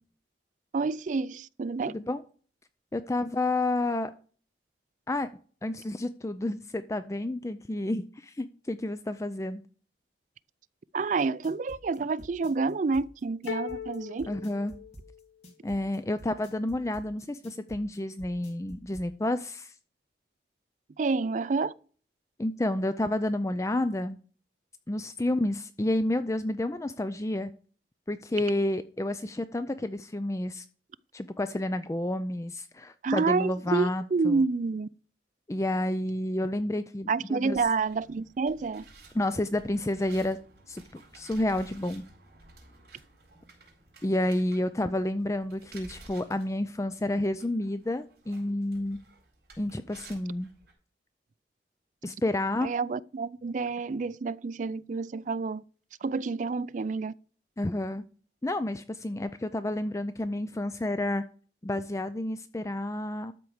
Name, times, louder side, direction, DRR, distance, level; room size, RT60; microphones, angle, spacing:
voice 1, 0.7-2.0 10.9-14.3 21.0-21.7 33.0-34.9 37.1-38.8 52.6-55.6 56.0-57.1, right 4 dB, 45° right, 0.4 m, -28 dB
voice 2, 1.9-2.2 2.9-4.1 5.1-5.3 5.6-9.6 14.3-14.7 15.6-19.7 22.4-24.2 24.9-27.5 28.1-30.7 31.1-34.4 35.5-37.6 39.1-40.4 40.7-42.0 44.0-49.0 49.6-50.5 52.0-52.7 57.6-58.0 58.4-61.2 61.6-63.3, left 1 dB, 15° left, 0.4 m, -30 dB
sound 1, 11.2-19.1, equal, 40° left, 2.5 m, -49 dB
sound 2, 13.5-15.5, left 9 dB, 80° left, 0.4 m, -39 dB
sound 3, 37.5-50.7, right 3 dB, 60° right, 4.2 m, -54 dB
13.0 x 4.5 x 7.1 m
head